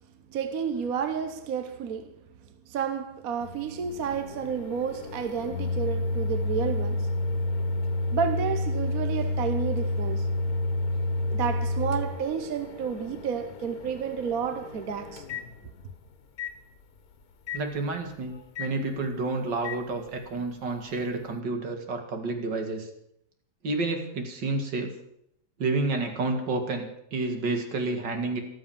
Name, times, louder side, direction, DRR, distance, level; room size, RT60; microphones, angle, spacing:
voice 1, 0.3-2.2 2.7-7.1 8.1-10.3 11.3-15.2, right 7 dB, 55° right, 1.4 m, -31 dB
Microwave oven, 3.4-16.0 16.4-16.5 17.5-17.6 18.6-18.7 19.6-19.8, left 2 dB, 55° left, 1.7 m, -30 dB
voice 2, 17.5-22.9 23.6-24.9 25.6-28.4, right 3 dB, 80° right, 2.8 m, -30 dB
14.0 x 13.0 x 7.3 m
omnidirectional pair, 1.9 m